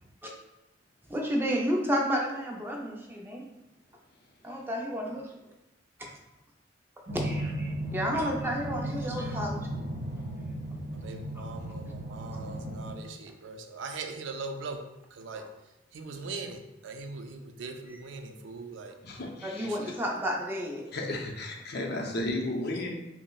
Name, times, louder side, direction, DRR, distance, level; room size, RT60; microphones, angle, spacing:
voice 1, 1.1-3.5 4.4-5.3 7.1-9.7 15.3-15.5 17.9-18.0 19.4-20.9, equal, 10° right, -1 dB, 0.5 m, -31 dB
sound 1, 7.1-12.9, right 1 dB, 45° right, 1.5 m, -35 dB
voice 2, 11.0-14.9 15.2-15.5 15.9-18.9 19.6-19.9, right 3 dB, 85° right, 6 dB, 0.4 m, -40 dB
voice 3, 19.0-19.7 20.9-22.9, left 1 dB, 60° left, 0 dB, 0.6 m, -33 dB
5.4 x 2.0 x 2.3 m, 0.95 s
head